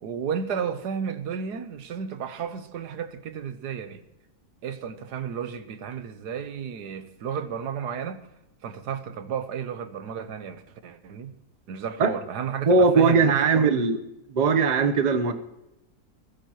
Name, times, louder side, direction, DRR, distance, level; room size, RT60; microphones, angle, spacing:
voice 1, 0.0-4.0 4.6-8.2 8.6-11.3 11.7-13.7, right 7 dB, 85° right, 1.5 m, -33 dB
voice 2, 12.7-14.0 14.3-15.3, right 4 dB, 35° right, 0.8 m, -19 dB
29.0 x 10.5 x 3.0 m
omnidirectional pair, 1.7 m